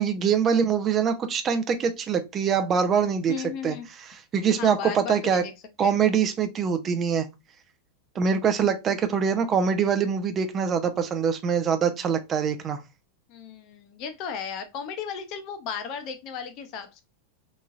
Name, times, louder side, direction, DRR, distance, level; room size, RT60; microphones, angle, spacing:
voice 1, 0.0-3.3 3.6-3.7 4.1-5.4 5.8-7.3 8.2-12.8, right 7 dB, 25° right, 0.5 m, -24 dB
voice 2, 3.3-3.9 4.6-5.5 5.8-6.0 8.2-8.3 13.3-17.0, left 7 dB, 40° left, 0.7 m, -35 dB
3.5 x 3.0 x 2.4 m
figure-of-eight pair, 90°, 0 cm